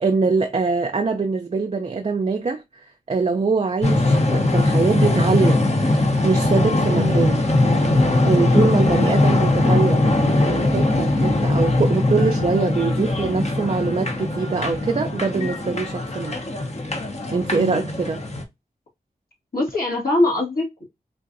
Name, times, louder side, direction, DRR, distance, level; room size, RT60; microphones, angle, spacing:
voice 1, 0.0-2.6 3.1-5.7 6.2-7.4 8.2-10.0 10.4-16.4 17.3-18.2, right 4 dB, 40° right, 0.5 m, -23 dB
sound 1, 3.8-18.4, left 2 dB, 45° left, 0.9 m, -20 dB
voice 2, 6.9-7.3 17.5-17.9 19.5-20.8, left 2 dB, 65° left, 1.8 m, -23 dB
3.8 x 2.5 x 2.6 m
cardioid pair, 50°, 16 cm